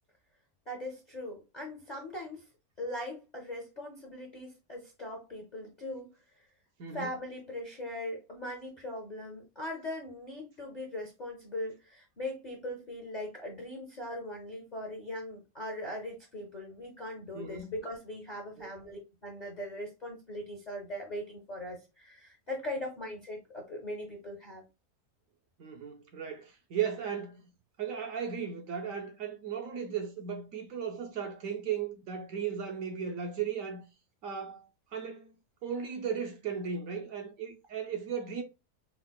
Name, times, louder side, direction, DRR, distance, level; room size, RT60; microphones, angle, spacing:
voice 1, 0.7-2.4 2.8-6.1 6.9-24.6, left 1 dB, 45° left, 0.5 m, -40 dB
voice 2, 6.8-7.1 17.3-17.7 18.6-18.7 25.6-27.4 27.8-33.8 34.2-34.7 34.9-35.3 35.6-38.4, right 7 dB, 70° right, 0.9 m, -36 dB
4.6 x 2.0 x 2.2 m
omnidirectional pair, 1.7 m